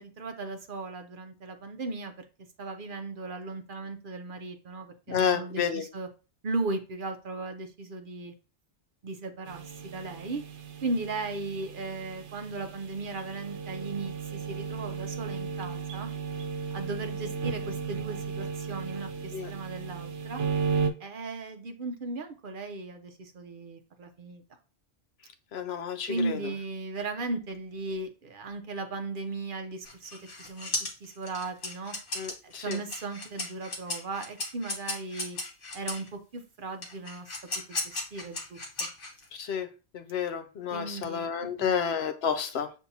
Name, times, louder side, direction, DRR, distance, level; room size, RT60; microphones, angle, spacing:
voice 1, 0.0-2.3 2.6-6.1 6.4-8.3 9.0-10.4 10.8-16.1 16.7-20.4 21.0-24.4 26.1-30.7 31.0-32.0 32.4-35.4 35.7-37.3 37.7-38.9 40.7-41.8, right 3 dB, 55° right, 0.7 m, -37 dB
voice 2, 5.1-5.8 19.3-19.5 25.5-26.4 32.2-32.8 39.3-39.7 39.9-42.7, left 7 dB, 70° left, 0.8 m, -30 dB
sound 1, 9.5-20.9, right 6 dB, 85° right, 0.9 m, -35 dB
sound 2, 29.8-36.1 36.8-39.4, left 2 dB, 50° left, 1.3 m, -36 dB
7.0 x 2.6 x 2.7 m
omnidirectional pair, 1.1 m